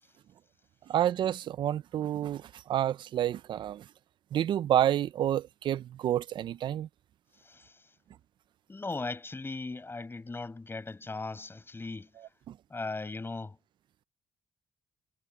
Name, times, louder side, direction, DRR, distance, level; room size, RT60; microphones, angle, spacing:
voice 1, 0.9-3.8 4.3-6.9 12.5-12.6, right 11 dB, 65° right, 0.8 m, -29 dB
voice 2, 7.4-7.8 8.7-12.1 12.7-13.6, left 3 dB, 25° left, 6.1 m, -38 dB
hypercardioid pair, 50°, 9 cm